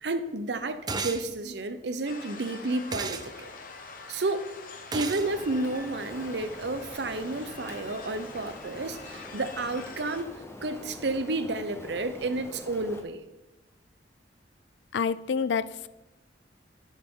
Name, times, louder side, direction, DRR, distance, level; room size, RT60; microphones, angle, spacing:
voice 1, 0.0-3.5 4.1-4.5 4.9-10.3 10.6-13.2, right 2 dB, 65° right, 0.7 m, -31 dB
sound 1, 0.9-1.2 2.9-3.3 4.9-5.3, right 4 dB, 25° right, 0.5 m, -32 dB
sound 2, 2.1-10.2, left 4 dB, 50° left, 1.0 m, -45 dB
Rain, 5.2-13.0, equal, 15° left, 0.8 m, -45 dB
voice 2, 14.9-15.9, left 6 dB, 80° left, 0.4 m, -28 dB
10.5 x 6.4 x 3.7 m
head